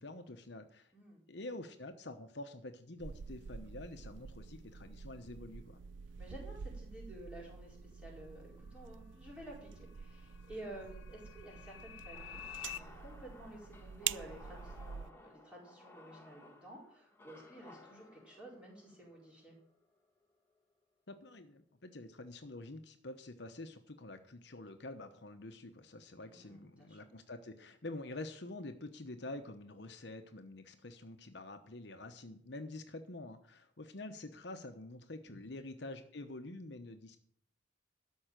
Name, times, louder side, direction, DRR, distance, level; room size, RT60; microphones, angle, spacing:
voice 1, 0.0-0.9 1.3-5.8 21.1-37.2, left 2 dB, 60° left, 7 dB, 0.9 m, -47 dB
sound 1, 3.0-15.1, right 8 dB, 75° right, 0.4 m, -47 dB
voice 2, 6.2-19.5 26.3-27.0 35.3-35.4, right 1 dB, 5° right, -4 dB, 4.5 m, -52 dB
sound 2, 8.5-12.8, left 12 dB, 90° left, 0.5 m, -51 dB
sound 3, 12.1-20.3, left 2 dB, 10° left, 1.3 m, -58 dB
13.0 x 5.6 x 9.0 m, 0.63 s
head